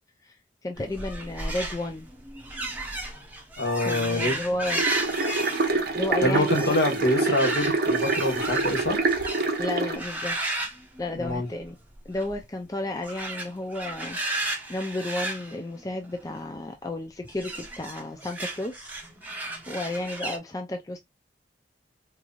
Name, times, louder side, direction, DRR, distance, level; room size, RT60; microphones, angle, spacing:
voice 1, 0.6-2.1 3.8-4.8 5.9-6.8 9.6-10.4 11.0-11.8 12.1-18.9 19.3-19.4 19.7-21.0, left 2 dB, 20° left, 0.4 m, -32 dB
sound 1, 0.8-9.6 9.9-11.7 11.9-12.3 13.0-16.4 17.3-20.4, right 2 dB, 10° right, 0.8 m, -34 dB
voice 2, 3.6-4.4 6.2-9.0 11.2-11.5, left 1 dB, 60° left, 1.3 m, -25 dB
sound 2, 4.7-10.0, right 3 dB, 60° right, 0.9 m, -26 dB
4.6 x 2.6 x 2.3 m
head